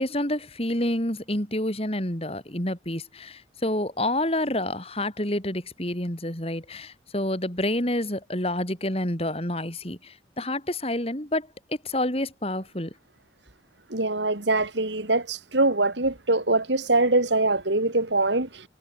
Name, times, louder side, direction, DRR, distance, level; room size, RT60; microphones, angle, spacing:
voice 1, 0.0-11.5 11.8-12.9, left 1 dB, 35° left, 5.0 m, -28 dB
voice 2, 13.9-18.7, right 2 dB, 80° right, 3.2 m, -23 dB
head